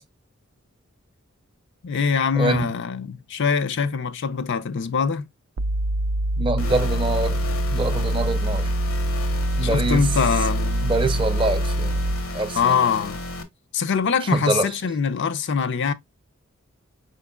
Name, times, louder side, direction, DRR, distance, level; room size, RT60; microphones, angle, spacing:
voice 1, 1.8-5.3 9.6-10.9 12.5-13.2 13.7-15.9, left 6 dB, 55° left, 0.5 m, -23 dB
voice 2, 2.3-2.7 6.4-7.4 7.7-8.7 9.6-10.1 10.8-12.1 12.3-12.8 14.3-14.7, right 2 dB, 25° right, 0.6 m, -25 dB
sound 1, 5.6-12.4, right 1 dB, 70° right, 0.4 m, -24 dB
sound 2, 6.6-13.4, left 3 dB, 75° left, 0.9 m, -33 dB
5.1 x 4.4 x 2.2 m
head